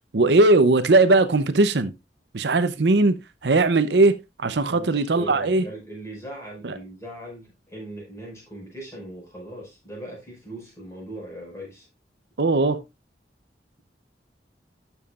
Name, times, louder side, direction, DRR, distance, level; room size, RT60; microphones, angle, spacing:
voice 1, 0.1-1.9 2.3-3.2 3.4-4.1 4.4-5.6 6.6-6.8 12.4-12.8, right 2 dB, 75° right, 0.7 m, -19 dB
voice 2, 4.7-11.9, right 1 dB, 15° left, 5.3 m, -39 dB
12.5 x 7.1 x 2.4 m
head